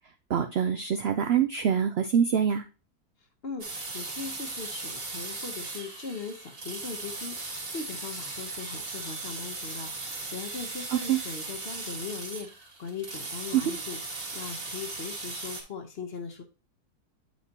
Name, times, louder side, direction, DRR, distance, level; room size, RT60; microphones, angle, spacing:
voice 1, 0.3-2.6 10.9-11.2 13.5-13.6, right 8 dB, 75° right, 7 dB, 0.5 m, -25 dB
sound 1, 3.6-15.6, right 3 dB, 55° right, 2.0 m, -38 dB
voice 2, 3.9-16.4, left 5 dB, 50° left, 5 dB, 0.9 m, -39 dB
8.8 x 4.4 x 2.8 m, 0.31 s
omnidirectional pair, 1.6 m